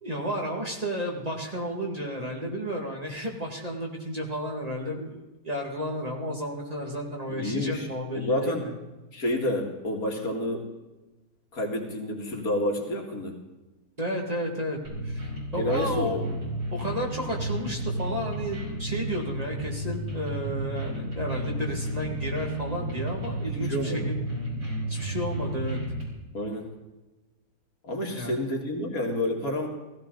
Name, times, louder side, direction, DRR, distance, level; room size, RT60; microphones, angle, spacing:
voice 1, 0.0-8.7 14.0-14.8 15.0-16.3 16.7-24.1 24.9-25.8 28.1-28.4, equal, 25° right, 0 dB, 2.0 m, -32 dB
voice 2, 7.3-7.9 8.1-8.7 9.1-10.7 11.5-13.4 15.6-16.5 23.6-24.1 26.3-26.7 27.8-29.7, left 1 dB, 70° left, 0 dB, 2.5 m, -29 dB
sound 1, 14.8-26.0, right 1 dB, 85° right, 5.6 m, -32 dB
16.0 x 15.5 x 3.9 m, 1.1 s
omnidirectional pair, 1.6 m